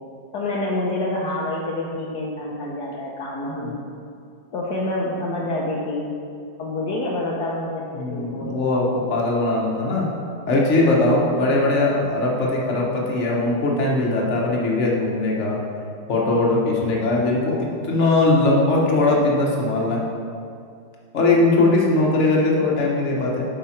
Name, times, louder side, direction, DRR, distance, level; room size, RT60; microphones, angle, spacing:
voice 1, 0.3-3.8 4.5-6.1 6.6-8.7, left 2 dB, 65° left, -4 dB, 1.3 m, -27 dB
voice 2, 7.9-10.1 10.5-15.6 16.1-20.0 21.1-23.5, left 2 dB, 40° left, -3 dB, 1.4 m, -20 dB
9.1 x 5.5 x 4.4 m, 2.4 s
omnidirectional pair, 2.1 m